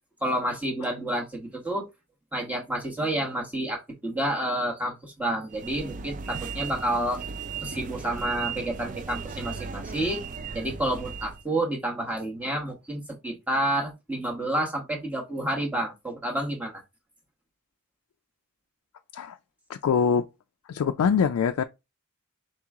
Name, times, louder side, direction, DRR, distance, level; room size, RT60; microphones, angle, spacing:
voice 1, 0.2-1.8 2.3-7.2 7.6-10.2 10.5-16.8, right 1 dB, 5° right, 1.1 m, -29 dB
sound 1, 5.5-11.4, right 5 dB, 35° right, 0.3 m, -37 dB
voice 2, 19.7-20.3 20.7-21.6, left 6 dB, 80° left, 0.3 m, -23 dB
4.3 x 2.9 x 3.6 m
head